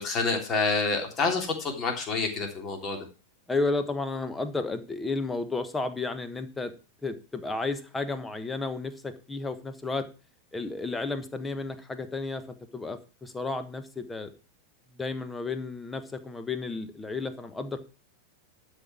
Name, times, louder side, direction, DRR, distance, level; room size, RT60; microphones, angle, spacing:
voice 1, 0.0-3.0, left 4 dB, 30° left, 3 dB, 3.2 m, -28 dB
voice 2, 3.5-6.7 7.0-10.1 10.5-14.3 15.0-17.8, left 3 dB, 10° left, 11 dB, 1.3 m, -32 dB
12.0 x 5.4 x 6.0 m, 0.33 s
figure-of-eight pair, 90°, 0 cm